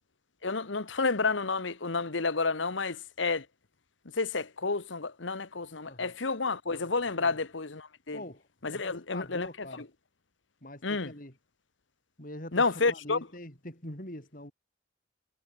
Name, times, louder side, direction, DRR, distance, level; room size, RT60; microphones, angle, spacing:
voice 1, 0.4-3.4 4.2-8.2 8.6-9.5 10.8-11.1 12.5-13.2, left 4 dB, 80° left, 1.4 m, -30 dB
voice 2, 5.8-6.1 7.2-7.4 8.1-8.5 8.7-9.9 10.6-11.3 12.2-14.5, left 1 dB, 45° left, 6.2 m, -44 dB
head